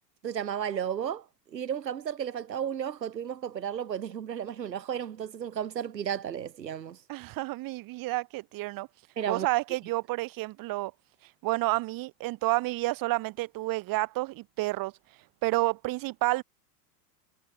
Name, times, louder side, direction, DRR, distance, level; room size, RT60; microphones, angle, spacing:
voice 1, 0.2-7.0 9.2-9.5, right 9 dB, 85° right, 4.5 m, -33 dB
voice 2, 7.1-8.9 9.3-10.9 11.4-14.9 15.4-16.4, right 20 dB, 45° right, 5.6 m, -30 dB
hypercardioid pair, 105°, 49 cm